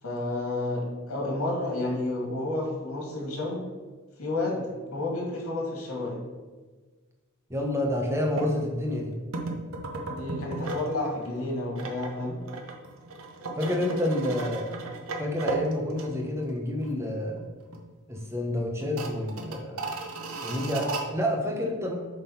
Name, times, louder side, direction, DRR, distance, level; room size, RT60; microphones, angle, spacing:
voice 1, 0.0-3.6 4.2-6.2 10.1-12.4, left 2 dB, 85° left, -1 dB, 2.4 m, -31 dB
voice 2, 7.5-9.2 13.6-14.7 15.0-17.4 18.1-19.9 20.4-22.0, left 1 dB, 15° right, 1 dB, 1.0 m, -29 dB
sound 1, 8.4-8.5 9.3-10.9 11.2-16.5 16.8-16.9 17.4-17.9 18.2-18.3 18.8-21.0, right 3 dB, 75° right, 1.0 m, -35 dB
7.5 x 3.8 x 5.8 m, 1.3 s
head